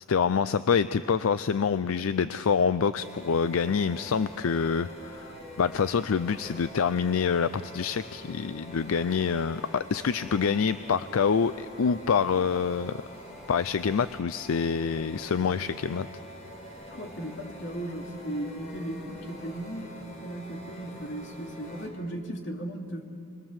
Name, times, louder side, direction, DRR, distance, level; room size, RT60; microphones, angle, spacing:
voice 1, 0.1-13.0 13.5-16.1, left 6 dB, 80° left, 14 dB, 0.5 m, -26 dB
sound 1, 2.9-21.9, equal, 35° left, 4.8 m, -45 dB
voice 2, 16.9-19.9 20.2-23.0, right 1 dB, 60° left, 2 dB, 2.7 m, -36 dB
26.0 x 21.5 x 7.4 m, 2.6 s
head